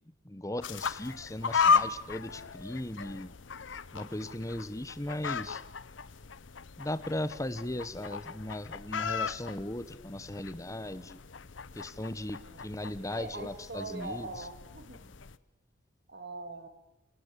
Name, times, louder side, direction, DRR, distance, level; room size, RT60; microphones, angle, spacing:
voice 1, 0.2-3.3 3.9-5.6 6.8-11.2 11.7-14.3, left 1 dB, 15° left, 15 dB, 1.0 m, -37 dB
sound 1, 0.6-15.4, left 6 dB, 70° left, 0.8 m, -35 dB
voice 2, 12.3-12.6 13.1-15.1 16.1-16.7, right 2 dB, 55° right, 7 dB, 3.2 m, -42 dB
28.0 x 19.0 x 8.3 m, 0.90 s
head